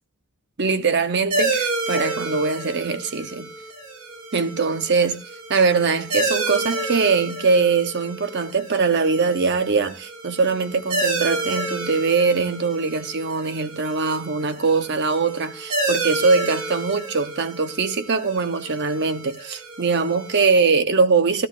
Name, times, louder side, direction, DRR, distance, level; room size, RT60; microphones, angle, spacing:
voice 1, 0.6-3.5 4.3-5.2 5.5-21.5, right 4 dB, 50° right, 0.8 m, -22 dB
sound 1, 1.3-20.5, right 2 dB, 85° right, 2.8 m, -30 dB
12.5 x 12.5 x 2.4 m
head